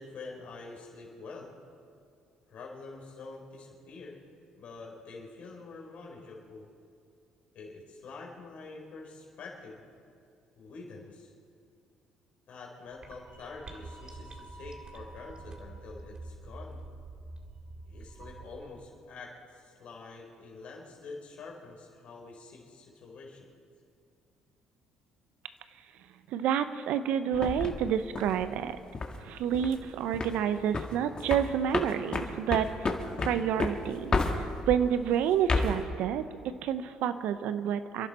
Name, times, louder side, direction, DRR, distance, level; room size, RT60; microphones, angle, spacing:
voice 1, 0.0-1.5 2.5-4.2 4.6-6.7 7.5-9.9 10.6-11.3 12.5-16.8 17.9-23.5, left 3 dB, 60° left, -1 dB, 4.3 m, -46 dB
sound 1, 12.9-18.6, right 2 dB, 40° right, 2.3 m, -46 dB
voice 2, 26.3-28.8 29.2-32.9 33.2-36.2 36.6-38.1, right 9 dB, 70° right, 11 dB, 0.8 m, -29 dB
sound 2, 27.3-29.2 29.5-29.8 30.1-30.4 30.7-34.8 35.3-35.8, left 3 dB, 35° left, 1.9 m, -31 dB
28.5 x 11.0 x 4.3 m, 2.4 s
hypercardioid pair, 60°, 2 cm